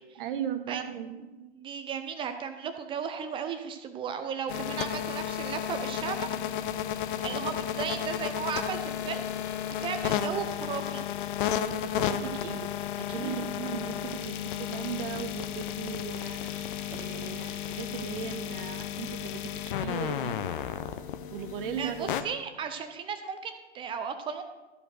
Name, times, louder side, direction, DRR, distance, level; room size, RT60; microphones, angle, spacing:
voice 1, 0.2-1.4 7.3-7.4 11.8-20.4 21.3-22.1, right 9 dB, 45° right, 9 dB, 1.1 m, -38 dB
voice 2, 1.6-6.3 7.2-9.5 9.8-11.0 13.2-13.4 21.8-24.4, right 7 dB, 15° right, 8 dB, 0.5 m, -35 dB
sound 1, 4.5-22.2, left 10 dB, 45° left, 0.9 m, -33 dB
14.0 x 5.1 x 6.3 m, 1.1 s
hypercardioid pair, 120°, 36 cm